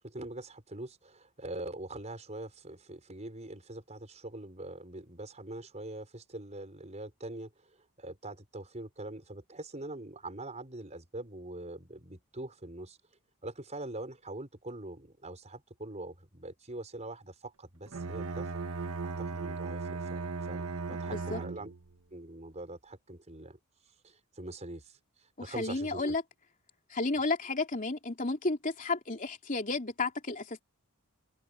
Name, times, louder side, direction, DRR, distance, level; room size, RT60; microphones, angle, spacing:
voice 1, 0.0-13.0 13.4-18.5 19.0-21.7 22.1-23.6 24.0-26.1, right 2 dB, 30° right, 5.0 m, -43 dB
Bowed string instrument, 17.9-21.9, right 4 dB, 70° right, 1.0 m, -37 dB
voice 2, 25.4-26.2 26.9-30.6, left 3 dB, 35° left, 3.3 m, -32 dB
head